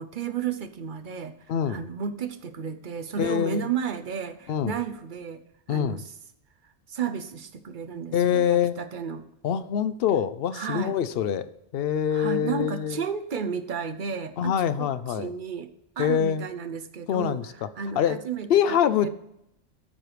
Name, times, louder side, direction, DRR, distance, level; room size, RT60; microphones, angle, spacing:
voice 1, 0.0-1.3 1.7-5.4 5.7-6.1 6.9-9.2 10.5-10.9 12.1-14.5 14.8-15.7 16.0-17.4 17.8-19.1, right 7 dB, 50° right, 10 dB, 0.8 m, -33 dB
voice 2, 1.5-1.9 3.2-3.7 4.5-4.7 5.7-6.0 8.1-8.8 9.4-11.4 11.7-13.0 14.4-15.3 16.0-16.5 17.1-17.7 18.0-18.2 18.5-19.1, left 9 dB, 60° left, 13 dB, 0.8 m, -24 dB
13.0 x 4.7 x 5.0 m, 0.80 s
omnidirectional pair, 1.2 m